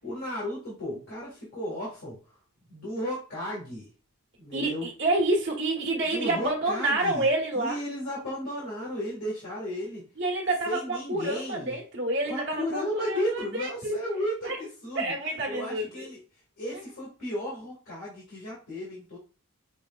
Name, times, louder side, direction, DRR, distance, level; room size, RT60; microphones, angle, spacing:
voice 1, 0.0-2.3 2.7-3.9 4.4-4.9 6.1-7.3 7.5-10.0 10.6-11.7 12.2-15.1 15.5-16.2 16.6-19.2, left 1 dB, 65° left, -6 dB, 2.0 m, -34 dB
voice 2, 4.5-7.8 10.2-13.9 14.4-14.6 14.9-16.0 16.7-16.8, right 2 dB, 55° right, -1 dB, 1.3 m, -28 dB
6.4 x 2.9 x 2.4 m, 0.35 s
head